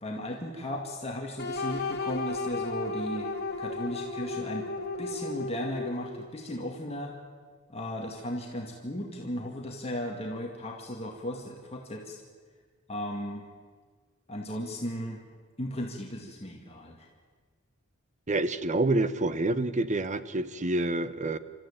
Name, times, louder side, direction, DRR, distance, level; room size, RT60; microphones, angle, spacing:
voice 1, 0.0-3.3 3.6-4.7 5.0-7.1 7.7-12.2 12.9-13.4 14.3-15.2 15.6-17.1, equal, 30° left, 0 dB, 2.2 m, -36 dB
sound 1, 1.4-6.3, left 3 dB, 50° left, 2.7 m, -34 dB
voice 2, 18.3-21.4, right 2 dB, 35° right, 14 dB, 1.0 m, -27 dB
29.5 x 13.5 x 8.9 m, 1.5 s
head